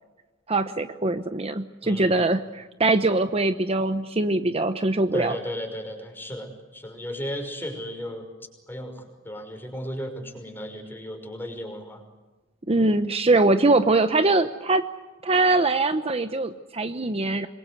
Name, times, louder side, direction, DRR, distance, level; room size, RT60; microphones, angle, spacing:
voice 1, 0.5-5.4 12.7-14.8 15.2-17.5, right 2 dB, 30° right, 9 dB, 0.9 m, -22 dB
voice 2, 1.8-2.2 5.1-8.3 8.7-12.0, equal, 10° left, 4 dB, 5.7 m, -35 dB
27.0 x 23.0 x 8.0 m, 1.2 s
head